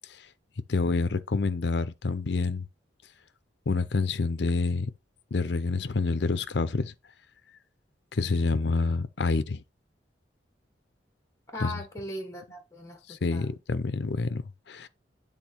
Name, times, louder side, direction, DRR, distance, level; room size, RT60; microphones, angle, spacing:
voice 1, 0.7-2.7 3.7-4.9 5.3-6.9 8.1-9.6 11.6-11.8 13.1-14.9, left 3 dB, 65° left, 0.6 m, -28 dB
voice 2, 11.5-13.6, left 1 dB, 15° left, 1.2 m, -39 dB
8.2 x 3.7 x 4.3 m
head